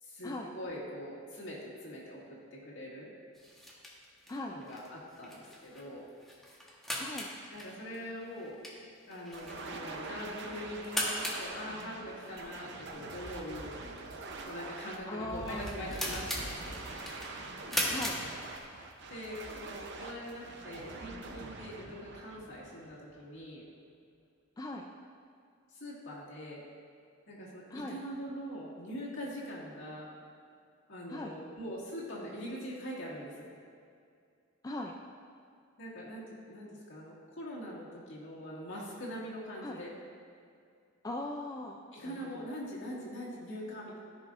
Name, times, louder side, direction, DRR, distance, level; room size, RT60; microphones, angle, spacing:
voice 1, 0.0-3.1 4.5-6.1 7.5-8.6 9.1-13.8 14.5-16.8 19.1-23.6 25.7-26.6 27.3-30.1 30.9-33.5 35.8-39.9 41.9-44.0, equal, 65° left, -6 dB, 2.0 m, -43 dB
sound 1, 3.3-19.0, equal, ahead, 1.2 m, -40 dB
sound 2, 9.3-23.2, right 3 dB, 60° right, 0.7 m, -44 dB
voice 2, 15.1-15.8 17.9-18.2 24.6-24.9 27.7-28.0 31.1-31.4 34.6-34.9 39.6-39.8 41.0-41.8 42.2-42.5, left 1 dB, 20° left, 1 dB, 0.3 m, -39 dB
14.0 x 5.4 x 2.5 m, 2.3 s
head